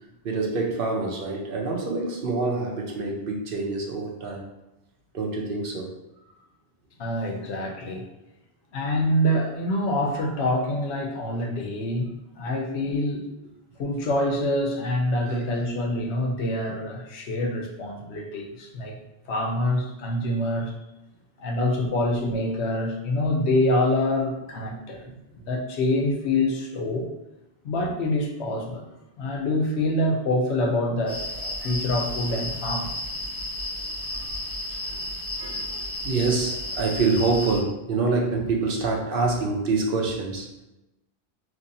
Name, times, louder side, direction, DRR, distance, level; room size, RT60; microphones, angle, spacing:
voice 1, 0.2-4.4 5.1-5.9 34.9-35.0 35.4-40.6, right 3 dB, 60° right, 0 dB, 0.9 m, -26 dB
voice 2, 7.0-8.1 8.7-13.3 13.8-19.0 19.3-20.7 21.4-25.1 25.3-27.1 27.6-28.9 29.2-31.2 31.6-32.9, left 1 dB, 85° left, 1 dB, 1.0 m, -26 dB
sound 1, 31.1-37.6, left 1 dB, 15° left, 1.0 m, -32 dB
3.1 x 2.6 x 4.0 m, 0.94 s
omnidirectional pair, 1.1 m